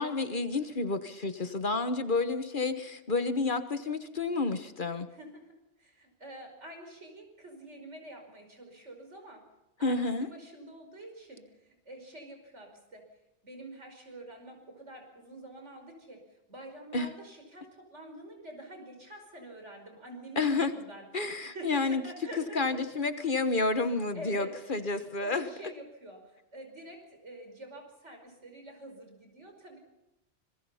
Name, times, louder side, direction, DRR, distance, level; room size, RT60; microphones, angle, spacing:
voice 1, 0.0-5.1 9.8-10.3 16.9-17.1 20.4-20.7 21.1-22.0 22.5-25.5, left 3 dB, 45° left, 9 dB, 1.3 m, -30 dB
voice 2, 5.1-9.5 9.8-13.1 13.4-21.1 21.4-22.8 24.1-24.8 25.2-29.8, right 1 dB, 80° right, 4 dB, 5.4 m, -47 dB
26.0 x 22.0 x 5.7 m, 0.92 s
omnidirectional pair, 1.2 m